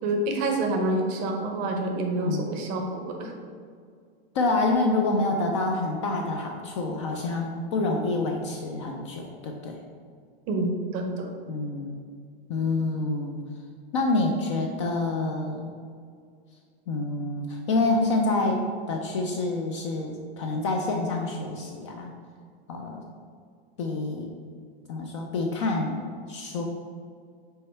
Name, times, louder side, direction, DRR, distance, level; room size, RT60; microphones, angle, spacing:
voice 1, 0.0-3.3 10.5-11.3, right 2 dB, 25° right, 3 dB, 0.6 m, -27 dB
voice 2, 4.3-9.8 11.5-12.0 12.5-13.4 13.9-15.7 16.9-22.1 22.7-23.0 23.8-24.3 24.9-26.0 26.3-26.6, left 2 dB, 30° left, 1 dB, 0.4 m, -27 dB
5.4 x 4.3 x 4.3 m, 2.1 s
supercardioid pair, 170°, 31 cm